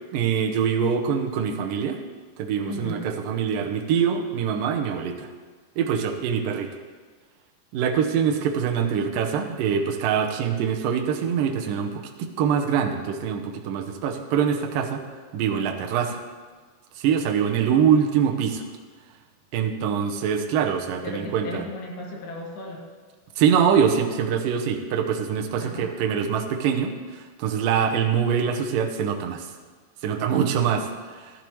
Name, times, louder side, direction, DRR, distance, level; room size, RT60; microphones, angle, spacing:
voice 1, 0.1-2.0 2.4-5.3 5.8-6.7 7.7-15.0 15.3-16.2 17.0-18.6 19.5-21.6 23.4-29.5 30.0-31.3, right 7 dB, 80° right, 3 dB, 1.9 m, -24 dB
voice 2, 2.7-3.1 21.0-22.9 25.6-26.0, left 2 dB, 65° left, -1 dB, 3.4 m, -35 dB
15.5 x 11.5 x 3.1 m, 1.5 s
omnidirectional pair, 5.1 m